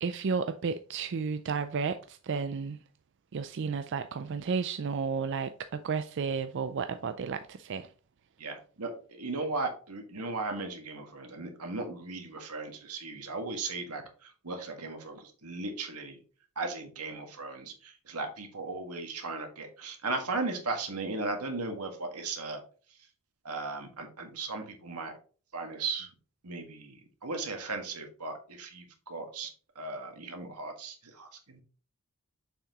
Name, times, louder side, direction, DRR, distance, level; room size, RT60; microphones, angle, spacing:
voice 1, 0.0-2.8 3.3-7.9, right 5 dB, 55° right, 0.4 m, -32 dB
voice 2, 8.4-16.2 16.6-22.6 23.4-25.1 25.5-26.1 26.4-31.6, right 3 dB, 90° right, 1.7 m, -37 dB
6.9 x 5.8 x 2.9 m
head